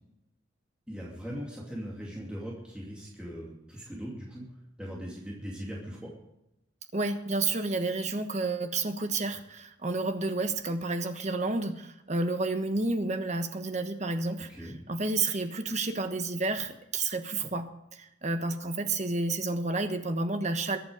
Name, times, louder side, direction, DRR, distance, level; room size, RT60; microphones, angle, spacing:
voice 1, 0.9-4.5 4.8-6.1 14.5-14.8, equal, 5° right, -4 dB, 2.5 m, -40 dB
voice 2, 6.9-20.8, right 3 dB, 35° right, 8 dB, 1.2 m, -30 dB
21.5 x 8.4 x 5.1 m, 0.88 s
head